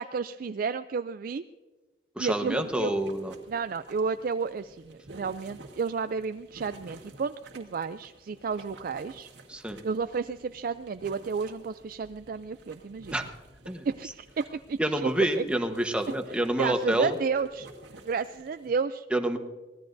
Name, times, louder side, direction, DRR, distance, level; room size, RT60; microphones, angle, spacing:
voice 1, 0.0-1.4 2.2-2.9 3.5-9.3 9.8-13.1 13.8-15.1 15.4-15.5 16.3-17.7 18.0-19.1, right 5 dB, 55° right, 11 dB, 0.4 m, -32 dB
voice 2, 2.2-3.3 9.5-9.8 13.1-13.2 13.7-13.8 14.8-17.1 19.1-19.4, right 1 dB, 5° right, 5 dB, 1.1 m, -28 dB
sound 1, 2.3-18.7, right 2 dB, 85° right, 1.8 m, -51 dB
24.5 x 18.0 x 2.6 m, 1.3 s
head